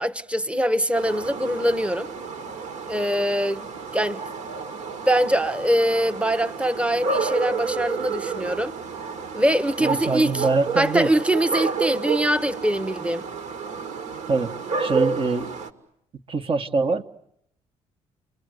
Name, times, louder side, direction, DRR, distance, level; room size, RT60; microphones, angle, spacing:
voice 1, 0.0-2.1 2.9-3.7 3.9-4.2 5.1-8.8 9.3-10.4 10.8-13.2, equal, 10° right, 1.1 m, -23 dB
sound 1, 0.9-15.7, right 5 dB, 70° right, 2.4 m, -30 dB
voice 2, 9.8-11.1 14.3-14.5 14.8-15.6 16.3-17.0, right 3 dB, 40° right, 1.5 m, -24 dB
30.0 x 24.0 x 8.0 m
supercardioid pair, 70°, 13 cm